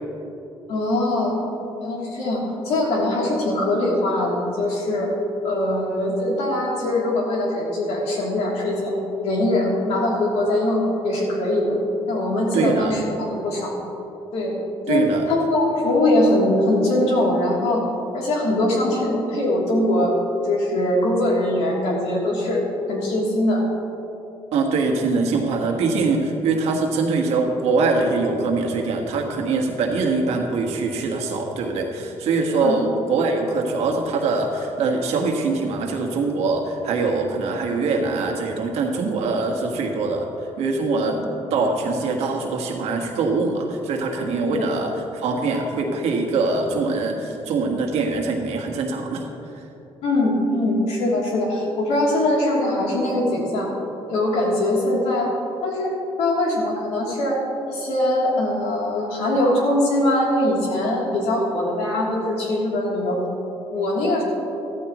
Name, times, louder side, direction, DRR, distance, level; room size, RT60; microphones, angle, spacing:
voice 1, 0.7-1.4 1.8-5.1 5.4-8.9 9.2-11.8 12.1-13.0 13.3-13.7 14.3-14.5 14.9-17.8 18.1-20.1 20.4-22.6 22.9-23.6 32.6-32.8 41.1-41.2 44.5-44.6 50.0-53.7 54.1-55.3 55.6-57.4 57.7-63.2 63.7-64.2, left 1 dB, 90° left, -3 dB, 3.1 m, -22 dB
voice 2, 12.5-12.9 14.9-15.2 24.5-40.3 40.6-41.2 41.5-49.3 49.5-49.6, right 3 dB, 85° right, 1 dB, 1.6 m, -23 dB
14.0 x 13.5 x 3.1 m, 2.9 s
cardioid pair, 95°, 10 cm